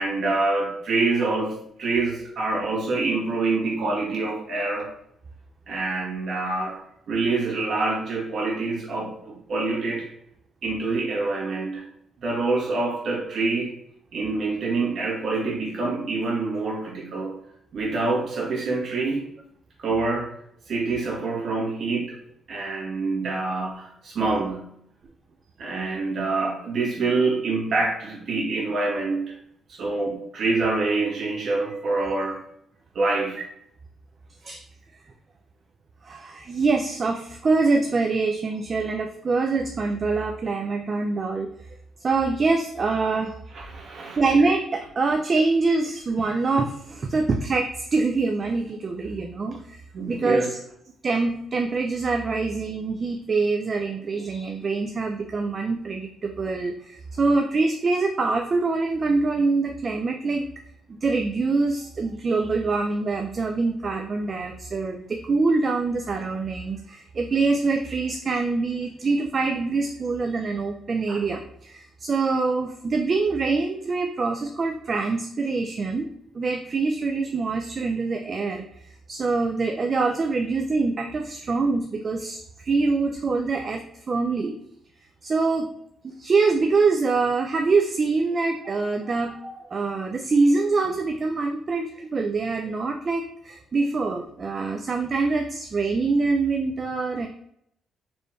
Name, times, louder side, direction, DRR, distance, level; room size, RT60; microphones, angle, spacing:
voice 1, 0.0-4.9 5.7-6.8 7.1-10.1 10.6-11.9 12.2-13.7 14.1-17.4 17.7-19.3 19.8-20.3 20.7-22.1 22.5-24.7 25.6-29.3 29.7-32.4 32.9-33.4 43.5-44.2 49.9-50.5 71.1-71.2, right 3 dB, 60° right, -2 dB, 1.7 m, -26 dB
voice 2, 36.0-41.5 42.0-43.4 44.2-50.6 51.0-60.4 60.9-76.1 76.3-84.6 85.2-85.7 86.0-97.3, right 3 dB, 40° right, 3 dB, 0.4 m, -24 dB
4.3 x 3.2 x 3.2 m, 0.72 s
cardioid pair, 90°, 0 cm